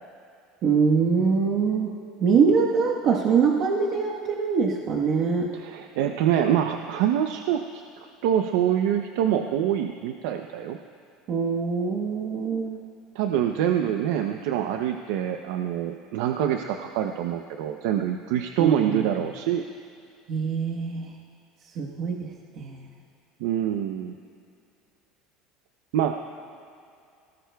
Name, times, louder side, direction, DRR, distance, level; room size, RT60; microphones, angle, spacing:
voice 1, 0.6-1.9 2.2-5.6 11.3-12.9 18.6-19.0 20.3-21.1 21.7-22.9, right 5 dB, 50° right, -2 dB, 1.2 m, -24 dB
voice 2, 5.5-7.6 8.0-10.8 13.1-19.6 23.4-24.2 25.9-26.1, right 10 dB, 80° right, 5 dB, 0.6 m, -25 dB
22.5 x 18.5 x 2.3 m, 2.5 s
cardioid pair, 140°, 0 cm